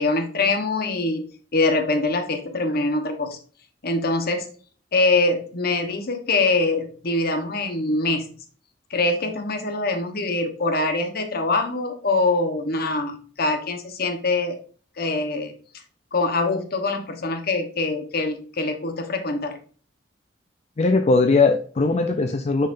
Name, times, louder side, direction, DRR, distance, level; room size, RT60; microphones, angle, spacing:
voice 1, 0.0-3.4 3.8-4.5 4.9-8.2 8.9-14.6 15.0-15.5 16.1-19.6, left 2 dB, 55° left, 6 dB, 1.1 m, -24 dB
voice 2, 20.8-22.7, left 3 dB, 35° left, 6 dB, 0.4 m, -19 dB
6.5 x 5.8 x 2.6 m, 0.43 s
head